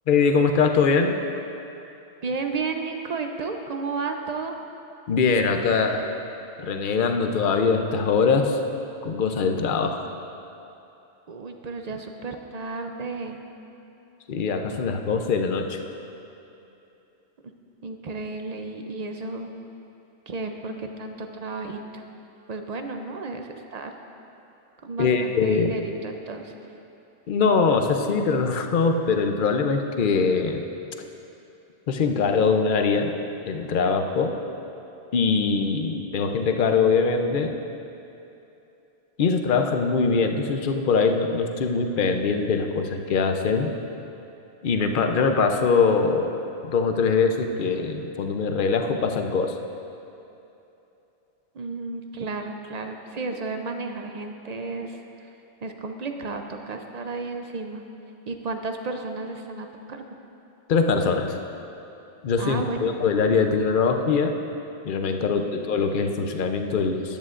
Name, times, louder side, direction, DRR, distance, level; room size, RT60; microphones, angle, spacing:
voice 1, 0.1-1.2 5.1-6.2 6.6-8.6 9.0-10.1 14.3-15.8 25.0-25.7 27.3-30.6 31.9-33.1 33.5-34.4 35.1-37.5 39.2-43.7 44.6-46.3 46.6-49.6 60.7-61.4 62.2-64.3 64.8-67.2, left 5 dB, 50° left, 5 dB, 0.7 m, -22 dB
voice 2, 2.2-4.5 11.3-13.4 17.8-19.5 20.3-22.0 22.5-23.9 24.8-26.6 51.5-57.8 58.3-60.0 62.4-62.9 65.2-65.5, right 3 dB, 50° right, 5 dB, 0.5 m, -33 dB
13.5 x 10.5 x 2.5 m, 2.9 s
omnidirectional pair, 1.2 m